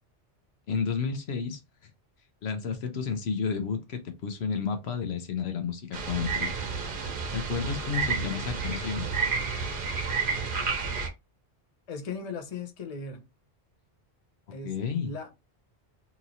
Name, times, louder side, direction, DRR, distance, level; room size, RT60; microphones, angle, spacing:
voice 1, 0.7-1.6 2.4-6.5 7.3-9.1 14.6-15.1, left 6 dB, 70° left, 0.9 m, -31 dB
sound 1, 5.9-11.1, right 5 dB, 55° right, 0.9 m, -30 dB
voice 2, 11.9-13.3 14.5-15.3, left 4 dB, 40° left, 0.6 m, -38 dB
2.9 x 2.9 x 2.5 m
omnidirectional pair, 1.1 m